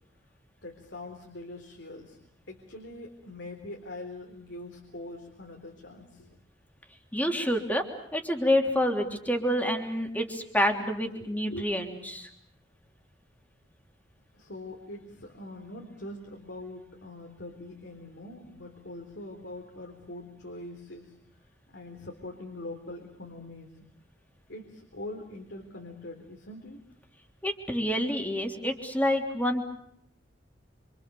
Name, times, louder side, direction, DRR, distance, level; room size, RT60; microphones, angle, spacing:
voice 1, 0.6-2.2 2.5-6.4 11.5-11.7 14.3-21.1 21.7-23.7 24.5-26.8, left 1 dB, 75° left, 2 dB, 3.9 m, -43 dB
voice 2, 7.1-7.8 8.1-12.3 27.4-29.6, equal, 10° left, 4 dB, 3.4 m, -28 dB
27.5 x 27.0 x 7.0 m, 0.72 s
head